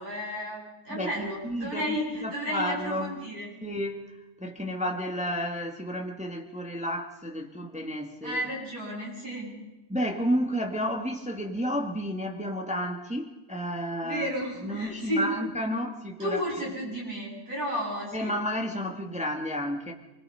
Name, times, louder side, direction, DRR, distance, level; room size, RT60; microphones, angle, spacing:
voice 1, 0.0-3.5 8.2-9.5 14.0-15.3 16.2-18.3, equal, 65° right, -3 dB, 7.7 m, -33 dB
voice 2, 0.9-3.1 3.6-8.4 9.9-14.3 14.6-16.4 18.1-19.9, equal, 5° right, 2 dB, 1.6 m, -31 dB
25.5 x 21.5 x 5.6 m, 1.1 s
omnidirectional pair, 1.7 m